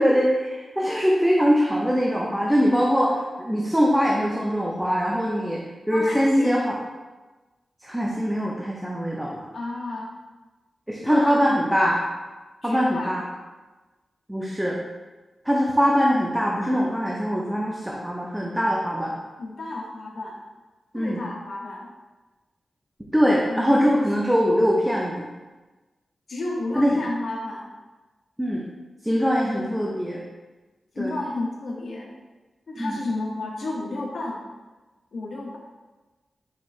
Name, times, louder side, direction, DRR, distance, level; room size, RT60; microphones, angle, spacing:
voice 1, 0.0-5.6 5.9-6.8 7.8-9.4 10.9-12.0 12.6-13.2 14.3-14.8 15.5-19.1 20.9-21.2 23.1-25.3 26.8-27.0 28.4-28.6 29.0-30.2 31.0-31.1 32.8-32.9, equal, 5° right, -3 dB, 0.4 m, -22 dB
voice 2, 5.9-6.6 9.5-10.2 11.0-11.4 12.6-13.2 19.4-20.4 20.9-21.9 23.5-24.0 26.3-27.7 29.5-29.9 30.9-32.1 32.7-34.4 35.1-35.6, left 2 dB, 65° left, -2 dB, 0.5 m, -32 dB
4.2 x 4.2 x 2.4 m, 1.2 s
wide cardioid pair, 155°, 0 cm